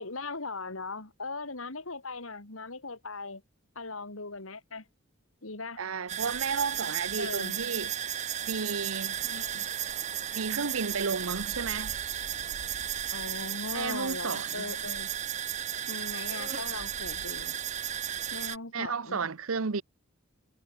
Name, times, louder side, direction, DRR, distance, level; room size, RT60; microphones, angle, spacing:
voice 1, 0.0-3.4 3.7-4.8 5.4-5.8 7.2-7.6 9.2-9.7 13.1-15.1 15.9-17.5 18.3-19.2, left 3 dB, 85° left, 3.2 m, -39 dB
voice 2, 5.8-7.9 8.4-9.2 10.3-11.9 13.7-14.7 18.7-19.8, right 5 dB, 85° right, 0.9 m, -32 dB
sound 1, 6.1-18.6, right 10 dB, 35° right, 0.7 m, -34 dB
head